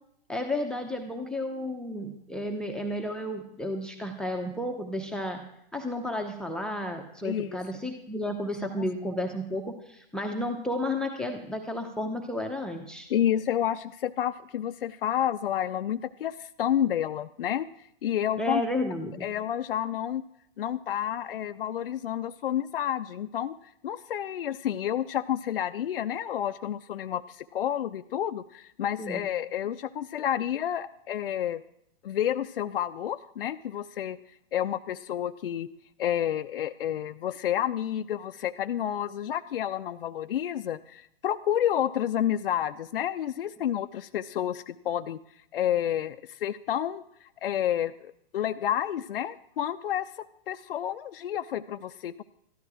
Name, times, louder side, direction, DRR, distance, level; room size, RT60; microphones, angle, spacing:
voice 1, 0.3-5.4 5.7-13.1 18.4-19.3 29.0-29.2, left 1 dB, 5° left, 4 dB, 0.7 m, -32 dB
voice 2, 7.2-7.6 13.1-17.7 18.0-18.6 19.2-20.2 20.6-23.5 23.8-31.6 32.0-34.2 34.5-35.7 36.0-45.2 45.5-52.2, left 10 dB, 70° left, 9 dB, 0.5 m, -30 dB
13.5 x 12.0 x 4.9 m, 0.76 s
figure-of-eight pair, 120°, 29 cm